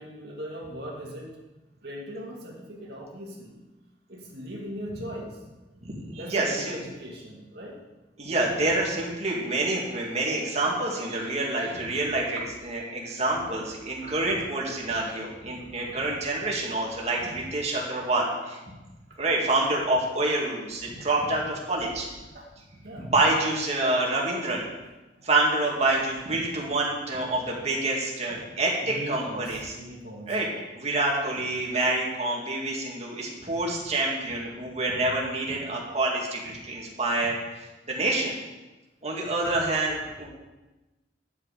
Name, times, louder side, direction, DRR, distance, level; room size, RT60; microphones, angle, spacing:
voice 1, 0.0-1.3 1.8-3.6 4.1-5.4 6.2-7.8 11.9-12.1 13.5-13.6 14.0-14.4 15.1-15.2 15.5-16.0 16.8-17.3 19.1-19.2 22.3-23.1 25.2-25.3 28.8-30.6 39.5-39.6, equal, 65° right, -3 dB, 2.1 m, -40 dB
voice 2, 5.8-6.8 8.2-18.6 19.2-22.1 23.0-24.7 25.2-29.7 30.3-30.5 30.7-37.4 37.9-38.3 39.0-40.3, right 2 dB, 35° right, -2 dB, 2.2 m, -27 dB
10.5 x 8.0 x 5.1 m, 1.1 s
head